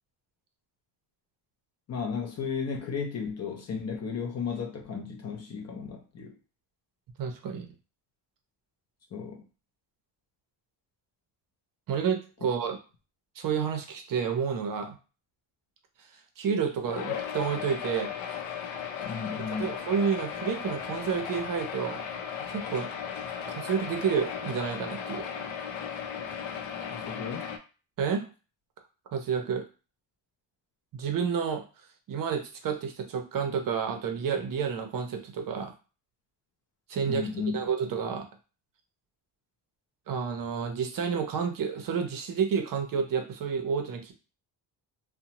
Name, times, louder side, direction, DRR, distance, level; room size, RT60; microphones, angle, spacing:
voice 1, 1.9-6.4 9.1-9.4 19.0-19.8 26.9-27.5 37.1-37.5, left 5 dB, 35° left, 0.5 m, -34 dB
voice 2, 7.2-7.7 11.9-12.8 13.4-15.0 16.4-18.1 19.5-22.1 22.5-22.9 23.5-25.4 28.0-28.3 29.1-29.7 30.9-31.6 32.1-35.7 36.9-37.3 37.5-38.3 40.1-44.1, right 6 dB, 50° right, 0.6 m, -30 dB
sound 1, 16.8-27.6, left 7 dB, 85° left, 0.6 m, -36 dB
2.7 x 2.1 x 2.8 m
cardioid pair, 135°, 45 cm